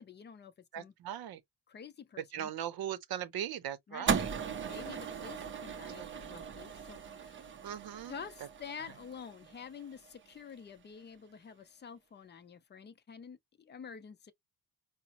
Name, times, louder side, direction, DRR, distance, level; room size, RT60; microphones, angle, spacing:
voice 1, 0.0-0.9 1.7-2.5 3.9-4.1 4.6-7.5 8.1-14.3, left 7 dB, 30° left, 0.4 m, -49 dB
voice 2, 0.7-1.4 2.3-5.0 6.0-6.5 7.6-8.2, right 10 dB, 65° right, 0.7 m, -40 dB
sound 1, 4.1-10.4, right 6 dB, 30° right, 0.5 m, -38 dB
4.9 x 2.0 x 2.8 m
cardioid pair, 155°, 39 cm